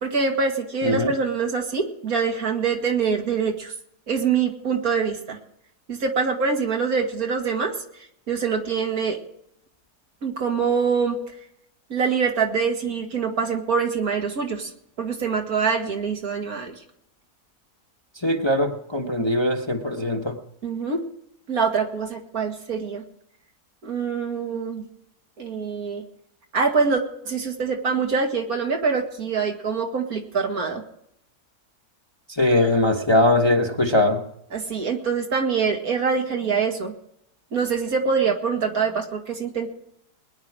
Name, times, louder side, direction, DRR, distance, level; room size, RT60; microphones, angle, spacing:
voice 1, 0.0-3.7 4.1-5.4 5.9-7.7 8.3-9.2 10.2-11.2 11.9-14.7 15.0-16.7 19.2-19.3 20.6-21.0 21.5-23.0 23.8-24.8 25.4-26.0 26.5-30.8 33.1-33.2 34.5-36.9 37.5-39.7, right 5 dB, 65° right, 3 dB, 2.3 m, -24 dB
voice 2, 0.8-1.1 18.2-20.4 32.3-34.2, left 1 dB, 20° left, 2 dB, 1.1 m, -21 dB
21.0 x 10.5 x 4.8 m, 0.74 s
omnidirectional pair, 1.7 m